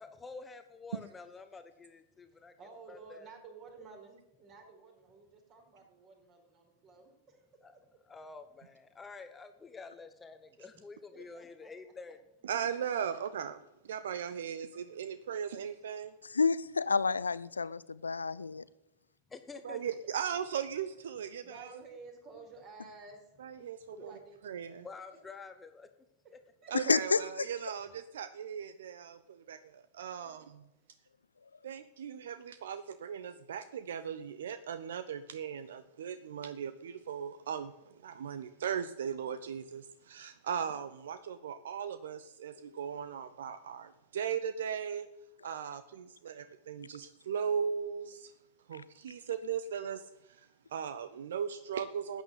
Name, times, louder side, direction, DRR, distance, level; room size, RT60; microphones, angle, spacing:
voice 1, 0.0-2.5 2.9-3.3 7.6-7.7 8.1-12.2 19.3-19.8 23.6-24.1 24.8-25.9, left 4 dB, 15° left, 1.1 m, -49 dB
voice 2, 2.3-7.4 11.3-11.7 19.7-19.9 21.4-23.3 24.0-24.4 26.2-26.4 26.6-26.7 30.2-30.3, right 4 dB, 35° right, 4.9 m, -53 dB
voice 3, 12.4-13.6 13.8-16.1 19.6-21.7 23.4-24.1 24.4-24.9 26.7-30.4 31.6-45.1 45.4-48.3 48.7-52.2, right 8 dB, 60° right, 0.7 m, -38 dB
voice 4, 16.3-18.6 26.8-27.2, left 4 dB, 75° left, 0.4 m, -29 dB
14.0 x 9.1 x 8.3 m
figure-of-eight pair, 90°, 0 cm